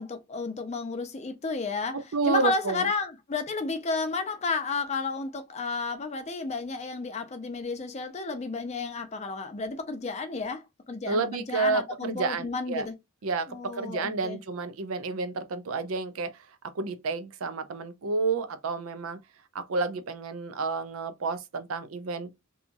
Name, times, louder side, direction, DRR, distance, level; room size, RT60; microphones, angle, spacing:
voice 1, 0.0-2.0 2.3-12.9 13.5-14.4, left 3 dB, 30° left, 0.5 m, -32 dB
voice 2, 1.9-2.9 11.1-12.9 13.2-16.4 16.6-19.2 19.5-22.3, right 4 dB, 80° right, 0.5 m, -30 dB
2.8 x 2.3 x 2.5 m
head